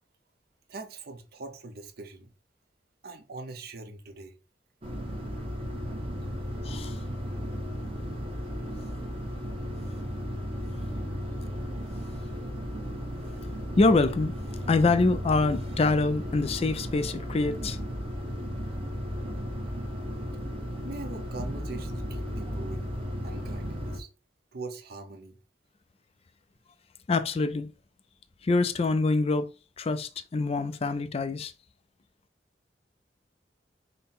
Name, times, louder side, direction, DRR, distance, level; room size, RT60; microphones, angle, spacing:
voice 1, 0.7-2.3 3.0-4.4 20.8-22.9 23.2-24.1 24.5-25.4, right 3 dB, 60° right, 0.9 m, -42 dB
sound 1, 4.8-24.0, equal, 30° right, 1.0 m, -35 dB
voice 2, 6.6-7.0 13.8-14.3 14.7-17.8 27.1-27.7 28.4-29.5 29.8-31.5, left 3 dB, 35° left, 0.4 m, -25 dB
5.4 x 2.2 x 4.2 m
head